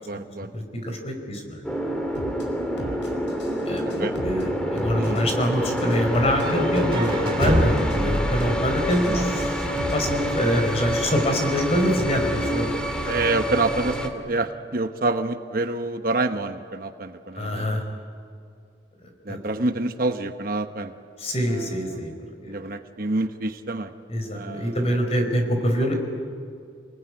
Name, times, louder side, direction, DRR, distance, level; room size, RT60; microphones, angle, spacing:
voice 1, 0.0-0.5 2.8-3.4 3.8-4.1 5.0-5.2 9.1-9.2 13.0-17.8 19.3-20.9 21.5-22.0 22.5-23.9 24.3-25.0, right 2 dB, 50° right, 7 dB, 1.1 m, -28 dB
voice 2, 0.5-1.6 3.6-9.6 9.9-12.7 17.4-17.8 19.3-19.4 21.2-22.1 22.4-22.5 24.1-25.9, equal, 35° left, 4 dB, 4.6 m, -25 dB
sound 1, 1.6-14.1, equal, 5° left, 2.2 m, -27 dB
sound 2, 2.1-2.4 2.8-3.5 3.8-4.4 4.8-5.5 5.8-6.4 6.8-7.5 7.8-8.4 8.8-10.1, equal, 80° left, 5.2 m, -37 dB
sound 3, 6.4-10.3, equal, 30° right, 3.1 m, -27 dB
29.0 x 20.0 x 9.8 m, 2.3 s
head